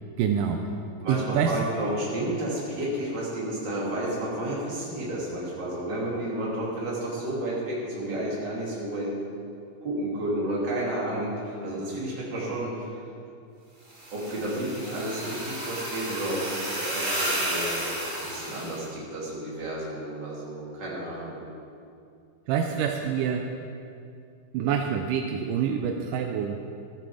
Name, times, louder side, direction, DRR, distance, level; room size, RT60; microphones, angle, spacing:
voice 1, 0.2-0.6 1.1-1.6 22.5-23.5 24.5-26.6, right 7 dB, 80° right, 4 dB, 2.2 m, -26 dB
voice 2, 1.0-9.1 9.8-13.0 14.1-16.6 16.9-21.4, right 1 dB, 35° right, -6 dB, 3.1 m, -31 dB
sound 1, 13.9-18.8, right 1 dB, 15° right, 1.9 m, -32 dB
14.0 x 9.2 x 5.0 m, 2.5 s
omnidirectional pair, 3.8 m